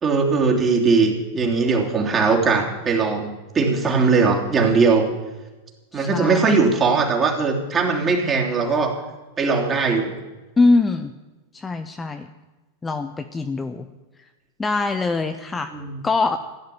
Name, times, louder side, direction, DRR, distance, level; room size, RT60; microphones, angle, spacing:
voice 1, 0.0-5.1 5.9-9.0 9.4-10.1 15.7-15.9, right 4 dB, 20° right, -1 dB, 3.2 m, -20 dB
voice 2, 5.9-6.6 10.6-11.1 11.5-12.3 12.8-13.9 14.6-15.7 16.0-16.4, left 3 dB, 15° left, 8 dB, 0.8 m, -22 dB
16.0 x 10.5 x 7.0 m, 1.2 s
figure-of-eight pair, 90°, 0 cm